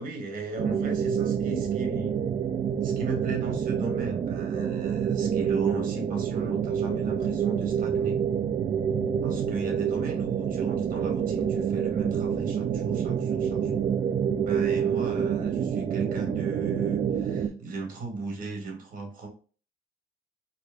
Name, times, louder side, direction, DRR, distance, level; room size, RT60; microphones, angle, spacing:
voice 1, 0.0-2.2 2.7-8.2 9.2-13.8 14.4-19.3, right 3 dB, 55° right, 3 dB, 1.6 m, -37 dB
sound 1, 0.6-17.5, right 8 dB, 40° right, 0.5 m, -27 dB
4.3 x 3.0 x 2.5 m, 0.39 s
cardioid pair, 110°, 17 cm